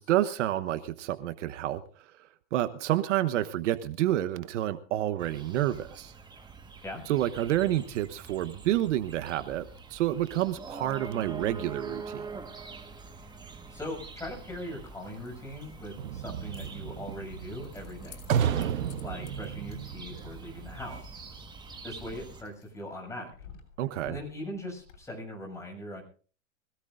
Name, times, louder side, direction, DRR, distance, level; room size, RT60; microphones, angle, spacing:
voice 1, 0.0-1.8 2.5-6.1 7.1-12.3 23.8-24.2, right 13 dB, 60° right, 11 dB, 1.2 m, -29 dB
sound 1, 5.2-22.4, right 4 dB, 10° right, 1.6 m, -45 dB
Keys jangling, 11.1-25.0, left 7 dB, 70° left, 7.2 m, -57 dB
voice 2, 13.7-18.2 19.0-21.2 21.8-23.3 24.1-26.0, left 1 dB, 5° left, -1 dB, 7.3 m, -40 dB
sound 2, 16.0-21.0, right 8 dB, 90° right, 1.2 m, -32 dB
25.0 x 18.0 x 2.6 m, 0.41 s
supercardioid pair, 150°, 40 cm